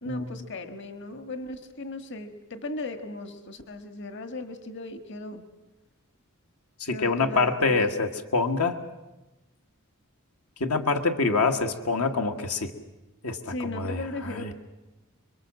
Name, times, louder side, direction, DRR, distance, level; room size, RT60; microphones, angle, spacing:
voice 1, 0.0-5.5 6.9-8.0 13.5-14.5, left 2 dB, 55° left, 9 dB, 1.7 m, -37 dB
voice 2, 6.8-8.8 10.6-12.7 13.2-14.0 14.3-14.5, left 3 dB, 85° left, 6 dB, 1.6 m, -25 dB
26.5 x 23.0 x 7.5 m, 1.0 s
head